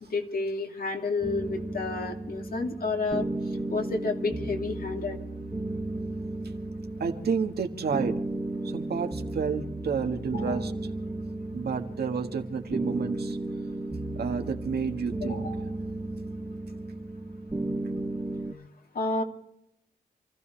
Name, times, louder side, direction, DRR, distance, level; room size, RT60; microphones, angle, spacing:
voice 1, 0.0-3.3 3.7-5.2 10.3-10.6 15.2-15.6 18.9-19.2, left 3 dB, 65° left, 2 dB, 2.7 m, -30 dB
sound 1, 1.2-18.5, right 2 dB, 15° right, 1.5 m, -34 dB
voice 2, 7.0-8.2 8.6-10.7 11.5-13.4 14.2-15.5, right 6 dB, 75° right, 4 dB, 1.8 m, -30 dB
28.0 x 15.0 x 3.4 m, 0.80 s
cardioid pair, 80°, 16 cm